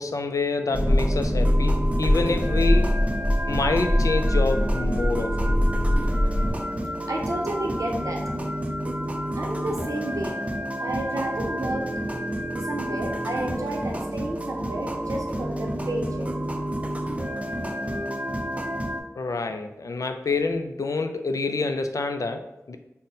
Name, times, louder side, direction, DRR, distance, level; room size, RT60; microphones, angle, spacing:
voice 1, 0.0-2.9 3.5-5.6 19.2-22.8, left 3 dB, 75° left, 6 dB, 0.3 m, -27 dB
sound 1, 0.7-6.5, left 1 dB, 20° left, 0.8 m, -22 dB
sound 2, 0.7-19.0, right 1 dB, 25° right, 0.4 m, -30 dB
voice 2, 7.1-8.2 9.3-10.3 10.8-11.9 12.6-16.3, right 1 dB, 90° right, 0 dB, 0.6 m, -31 dB
3.9 x 2.1 x 3.7 m, 0.88 s
wide cardioid pair, 45°, 6 cm